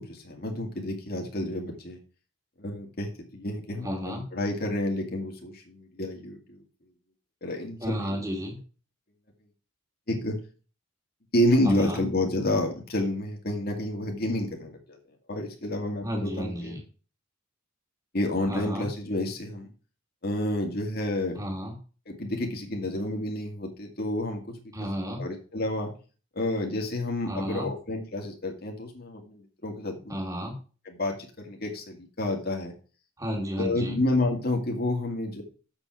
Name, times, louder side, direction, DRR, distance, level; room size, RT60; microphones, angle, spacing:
voice 1, 0.0-2.0 2.6-6.6 7.4-8.2 10.1-10.4 11.3-15.0 15.3-16.8 18.1-19.7 20.2-21.4 22.1-24.6 25.2-25.9 26.4-30.2 30.9-32.7 33.6-35.4, left 1 dB, 45° left, 2 dB, 2.2 m, -29 dB
voice 2, 3.8-4.3 7.8-8.6 11.6-12.0 16.0-16.8 18.5-18.9 21.4-21.8 24.7-25.3 27.2-27.7 30.1-30.6 33.2-34.0, equal, 15° right, 0 dB, 2.8 m, -32 dB
7.4 x 7.4 x 4.7 m, 0.36 s
head